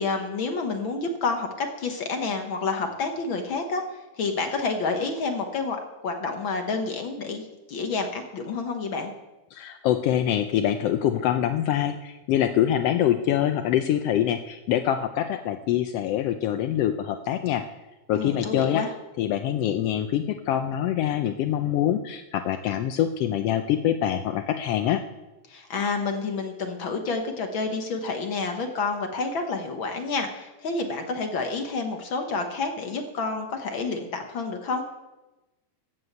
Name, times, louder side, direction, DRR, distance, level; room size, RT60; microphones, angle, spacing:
voice 1, 0.0-9.1 18.1-18.9 25.5-34.8, left 4 dB, 55° left, 4 dB, 1.5 m, -29 dB
voice 2, 9.5-17.6 18.1-18.8 19.2-25.0, left 11 dB, 80° left, 7 dB, 1.4 m, -25 dB
13.5 x 8.0 x 8.0 m, 1.1 s
omnidirectional pair, 3.4 m